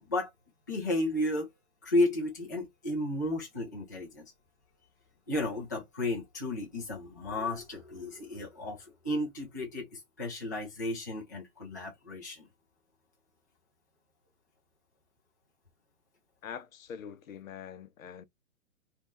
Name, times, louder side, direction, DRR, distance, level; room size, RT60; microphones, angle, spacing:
voice 1, 0.7-1.5 1.8-4.2 5.3-12.5, left 1 dB, 15° left, 0.4 m, -33 dB
voice 2, 16.4-18.2, left 8 dB, 65° left, 0.7 m, -44 dB
3.3 x 2.4 x 4.0 m
hypercardioid pair, 160°, 43 cm